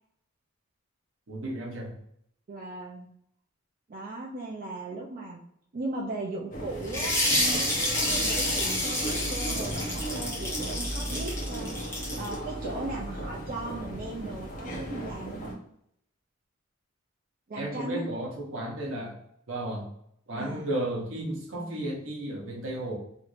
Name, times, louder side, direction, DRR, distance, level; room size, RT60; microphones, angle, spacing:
voice 1, 1.3-2.0 17.5-19.2 19.5-19.9 20.3-23.0, right 1 dB, 75° right, 0 dB, 0.9 m, -33 dB
voice 2, 2.5-3.1 3.9-5.4 5.7-7.6 7.9-11.7 12.1-15.5 17.5-18.1 20.3-20.7, right 2 dB, 45° right, -2 dB, 0.5 m, -37 dB
sound 1, 6.5-15.5, right 1 dB, 40° left, 0.8 m, -35 dB
sound 2, 6.9-12.3, left 1 dB, 10° left, 0.9 m, -29 dB
3.1 x 2.5 x 3.1 m, 0.71 s
head